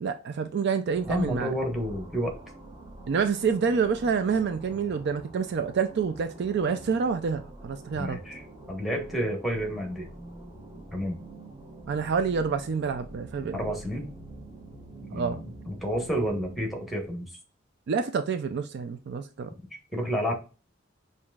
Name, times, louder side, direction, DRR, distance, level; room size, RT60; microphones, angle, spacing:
voice 1, 0.0-1.5 3.1-8.2 11.9-13.6 15.1-15.4 17.9-19.5, right 6 dB, 60° right, 0.4 m, -27 dB
sound 1, 0.9-17.1, right 1 dB, 25° right, 0.9 m, -46 dB
voice 2, 1.1-2.3 7.9-10.1 10.9-11.2 13.5-14.1 15.1-17.3 19.9-20.3, equal, ahead, 1.1 m, -30 dB
5.6 x 2.6 x 2.3 m
head